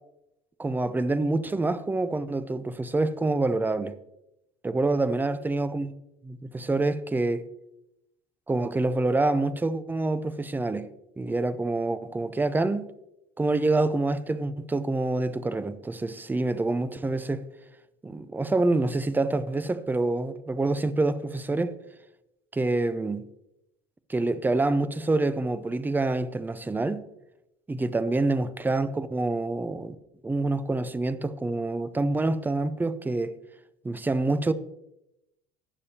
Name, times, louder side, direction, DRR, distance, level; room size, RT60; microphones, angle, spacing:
voice 1, 0.6-3.9 4.6-5.9 6.2-7.5 8.5-10.9 11.2-12.9 13.4-17.4 18.0-21.8 22.5-23.2 24.1-27.0 27.7-30.0 30.2-33.3 33.8-34.5, right 2 dB, 10° right, 0.6 m, -26 dB
17.0 x 6.9 x 2.9 m
supercardioid pair, 105°, 16 cm